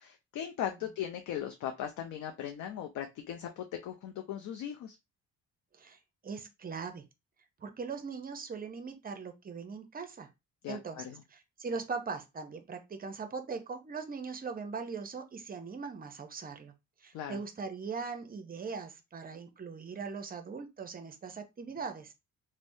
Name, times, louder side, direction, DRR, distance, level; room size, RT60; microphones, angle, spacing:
voice 1, 0.0-5.0 10.6-11.2 17.1-17.4, left 10 dB, 70° left, 0.5 m, -38 dB
voice 2, 6.2-7.0 7.6-10.3 10.7-16.7 17.0-22.1, right 5 dB, 30° right, 0.6 m, -40 dB
3.2 x 2.0 x 2.6 m
cardioid pair, 90°, 30 cm